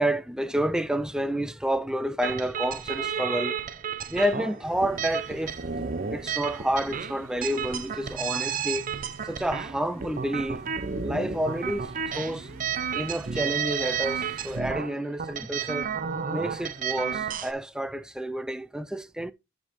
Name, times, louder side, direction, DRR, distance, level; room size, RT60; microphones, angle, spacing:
voice 1, 0.0-3.6 4.1-5.6 6.1-8.9 9.2-10.6 11.0-12.7 12.9-15.9 16.3-19.3, right 1 dB, 5° right, 0.3 m, -29 dB
sound 1, 2.2-17.5, right 7 dB, 45° right, 0.6 m, -32 dB
sound 2, 4.6-14.6, right 3 dB, 80° right, 0.8 m, -46 dB
12.0 x 5.3 x 3.0 m
head